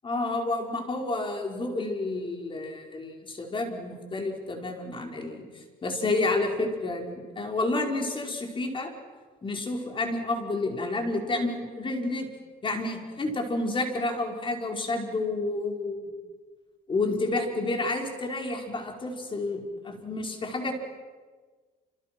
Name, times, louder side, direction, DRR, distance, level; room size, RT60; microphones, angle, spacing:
voice 1, 0.0-8.9 9.4-12.3 12.6-16.0 16.9-20.7, left 2 dB, 30° left, 3 dB, 5.0 m, -30 dB
29.0 x 28.0 x 6.1 m, 1.4 s
cardioid pair, 110°, 17 cm